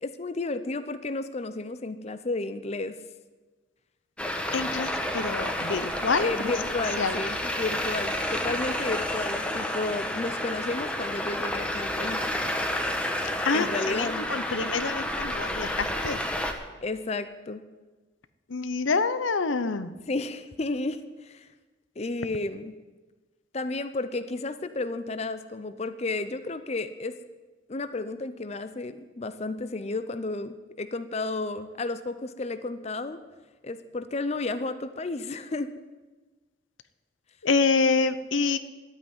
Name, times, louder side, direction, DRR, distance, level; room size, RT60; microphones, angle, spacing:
voice 1, 0.0-3.0 6.2-12.3 13.5-14.3 16.8-17.6 20.1-21.5 22.0-22.7 23.5-27.2 27.7-33.2 33.6-35.7, left 2 dB, 35° left, 11 dB, 0.6 m, -32 dB
Traffic noise roadway noise, 4.2-16.5, left 1 dB, 5° left, 1.1 m, -30 dB
voice 2, 4.5-6.5 7.0-7.2 13.4-16.2 18.5-19.9 37.4-38.6, left 4 dB, 85° left, 13 dB, 0.8 m, -27 dB
12.5 x 9.0 x 9.6 m, 1.3 s
head